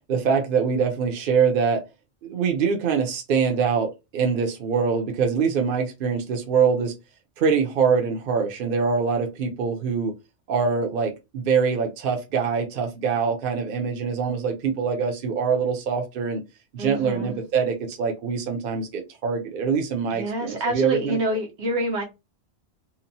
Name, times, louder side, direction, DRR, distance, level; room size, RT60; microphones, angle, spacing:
voice 1, 0.1-1.8 2.2-6.9 7.4-10.1 10.5-16.4 16.7-21.2, right 6 dB, 60° right, 0.7 m, -24 dB
voice 2, 16.8-17.4 20.1-22.0, right 1 dB, 85° right, 1.1 m, -27 dB
2.8 x 2.1 x 2.6 m
omnidirectional pair, 1.1 m